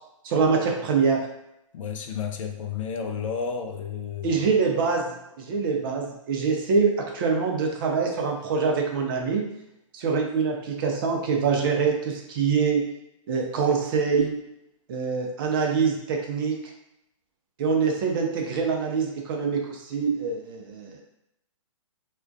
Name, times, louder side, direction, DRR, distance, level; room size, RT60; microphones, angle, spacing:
voice 1, 0.2-1.2 4.2-5.1 5.4-9.4 9.9-12.8 13.3-14.4 14.9-16.5 17.6-21.0, right 5 dB, 40° right, 1 dB, 0.5 m, -24 dB
voice 2, 1.7-4.5, left 6 dB, 70° left, 5 dB, 0.4 m, -32 dB
2.3 x 2.1 x 2.5 m, 0.82 s
hypercardioid pair, 140°, 17 cm